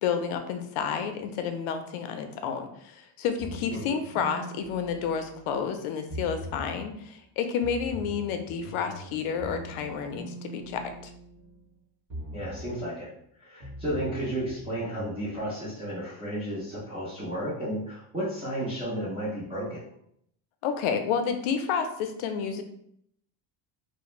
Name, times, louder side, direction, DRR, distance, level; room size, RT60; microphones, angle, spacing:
voice 1, 0.0-11.1 20.6-22.6, left 7 dB, 80° left, 7 dB, 0.5 m, -30 dB
sound 1, 3.4-5.6 6.1-6.9 7.6-11.7 12.1-12.9 13.6-15.4, equal, 30° right, 0.7 m, -42 dB
voice 2, 3.7-4.0 12.3-13.1 13.4-19.9, right 1 dB, 15° right, -10 dB, 0.4 m, -33 dB
2.4 x 2.0 x 3.0 m, 0.71 s
cardioid pair, 175°, 49 cm